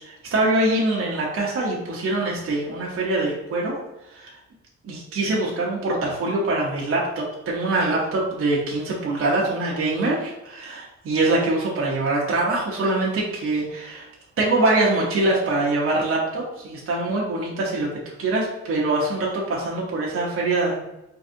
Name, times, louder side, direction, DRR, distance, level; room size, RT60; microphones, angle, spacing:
voice 1, 0.0-3.7 4.1-4.4 4.9-14.1 14.4-17.9 18.2-20.8, right 2 dB, 45° right, -4 dB, 0.9 m, -24 dB
3.9 x 2.7 x 2.6 m, 0.93 s
cardioid pair, 90°, 30 cm